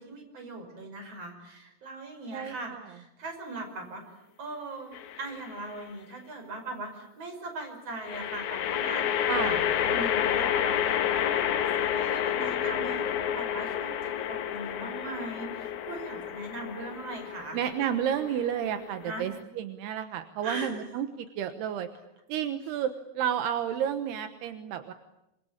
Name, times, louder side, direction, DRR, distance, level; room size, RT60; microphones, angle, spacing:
voice 1, 0.0-17.6 19.0-19.2 20.4-20.7, right 2 dB, 40° right, 5 dB, 6.4 m, -40 dB
voice 2, 2.3-2.8 9.3-9.6 17.5-21.9 22.3-22.9 23.2-24.9, right 9 dB, 80° right, 9 dB, 3.2 m, -31 dB
sound 1, 4.9-5.5 8.0-19.4, left 10 dB, 65° left, 2.2 m, -30 dB
26.5 x 24.0 x 8.8 m, 0.87 s
omnidirectional pair, 4.6 m